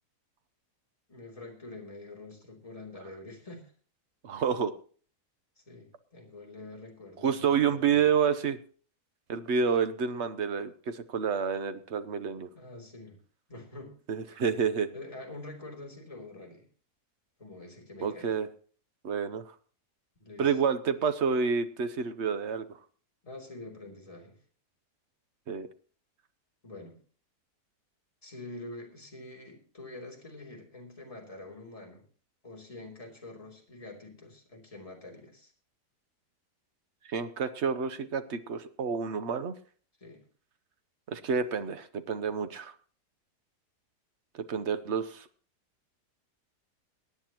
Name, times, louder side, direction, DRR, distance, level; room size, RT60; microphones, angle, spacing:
voice 1, 1.1-3.7 5.6-8.1 12.5-13.2 13.5-13.9 14.9-16.7 17.4-18.4 20.2-20.6 23.2-24.4 26.6-27.0 28.2-32.1 32.4-35.5 40.0-40.2, left 2 dB, 20° left, -1 dB, 3.1 m, -46 dB
voice 2, 4.2-4.7 7.2-8.6 9.3-12.5 14.1-14.9 18.0-18.5 19.0-19.5 20.4-22.7 25.5-25.7 37.1-39.6 41.1-42.7 44.3-45.3, right 6 dB, 50° right, 11 dB, 1.0 m, -29 dB
22.5 x 9.7 x 3.0 m, 0.43 s
omnidirectional pair, 1.7 m